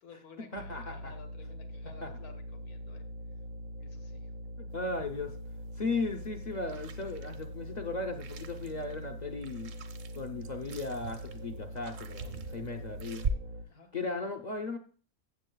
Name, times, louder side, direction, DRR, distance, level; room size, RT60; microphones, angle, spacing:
voice 1, 0.0-3.0 3.8-4.3 13.7-13.9, left 6 dB, 90° left, 6 dB, 1.6 m, -54 dB
voice 2, 0.5-1.1 2.0-2.2 4.6-5.4 5.8-9.7 10.2-13.3 13.9-14.8, left 3 dB, 45° left, 5 dB, 0.5 m, -36 dB
sound 1, 0.6-13.6, equal, 85° right, 1.3 m, -43 dB
sound 2, 4.7-13.3, right 6 dB, 65° right, 1.1 m, -43 dB
15.0 x 7.6 x 2.2 m, 0.42 s
omnidirectional pair, 1.5 m